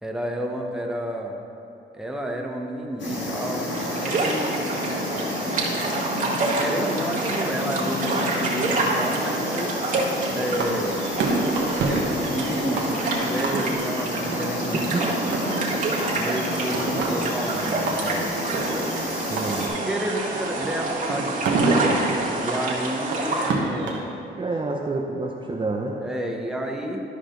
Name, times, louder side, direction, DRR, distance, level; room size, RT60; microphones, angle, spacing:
voice 1, 0.0-1.4 1.9-3.7 4.0-4.6 6.5-9.7 10.3-11.0 11.8-14.9 16.1-18.3 19.8-22.0 22.4-24.1 26.0-27.0, right 1 dB, 5° right, 0 dB, 1.0 m, -30 dB
sound 1, 3.0-19.7, left 1 dB, 70° left, 2.1 m, -30 dB
sound 2, 3.7-23.5, right 2 dB, 45° right, 1.7 m, -28 dB
sound 3, 10.5-24.0, right 3 dB, 70° right, 1.4 m, -29 dB
voice 2, 14.6-15.6 19.3-19.8 24.3-26.0, right 3 dB, 25° right, -1 dB, 0.7 m, -29 dB
13.0 x 4.9 x 3.9 m, 2.7 s
cardioid pair, 90°, 20 cm